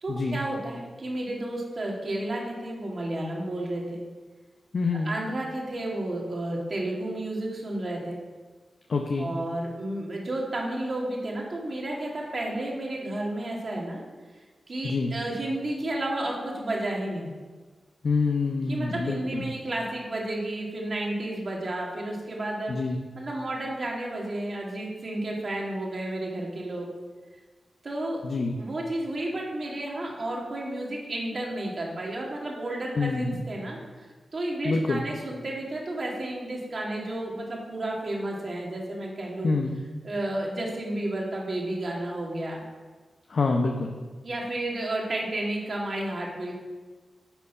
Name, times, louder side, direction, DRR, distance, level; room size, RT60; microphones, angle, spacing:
voice 1, 0.0-4.0 5.0-8.2 9.2-14.0 14.3-17.3 18.7-22.7 23.1-26.9 27.8-28.2 28.6-39.6 40.0-42.6 44.2-46.5, right 1 dB, 55° right, -2 dB, 2.3 m, -32 dB
voice 2, 4.7-5.1 8.9-9.3 14.8-15.1 18.0-19.5 22.7-23.0 28.2-28.6 33.0-33.4 34.6-35.0 39.4-39.8 43.3-43.9, left 3 dB, 65° left, 3 dB, 0.7 m, -26 dB
10.0 x 4.2 x 5.7 m, 1.4 s
cardioid pair, 45°, 0 cm